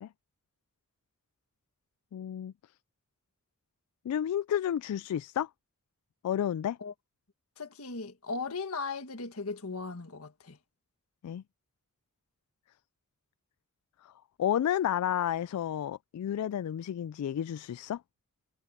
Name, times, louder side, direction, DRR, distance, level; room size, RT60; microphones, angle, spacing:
voice 1, 2.1-2.5 4.1-5.5 6.2-6.8 11.2-11.4 14.0-14.1 14.4-18.0, left 10 dB, 85° left, 0.3 m, -31 dB
voice 2, 7.6-10.6, left 4 dB, 70° left, 1.6 m, -37 dB
head